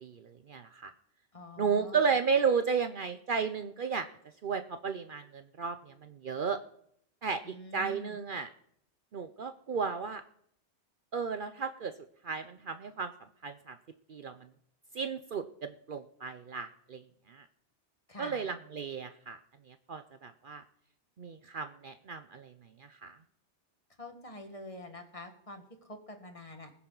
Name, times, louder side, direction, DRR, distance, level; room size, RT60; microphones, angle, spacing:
voice 1, 0.0-0.9 1.6-4.1 4.4-6.6 7.2-8.5 9.1-10.2 11.1-11.9 12.2-13.1 13.4-13.8 14.1-14.4 14.9-17.0 17.3-17.4 18.2-19.4 19.7-20.6 21.2-22.5 22.8-23.2, right 5 dB, 55° right, 9 dB, 0.8 m, -33 dB
voice 2, 1.3-2.1 7.4-8.2 18.1-18.5 24.0-26.7, left 1 dB, 30° left, 5 dB, 1.6 m, -47 dB
20.0 x 10.0 x 3.9 m, 0.68 s
omnidirectional pair, 1.2 m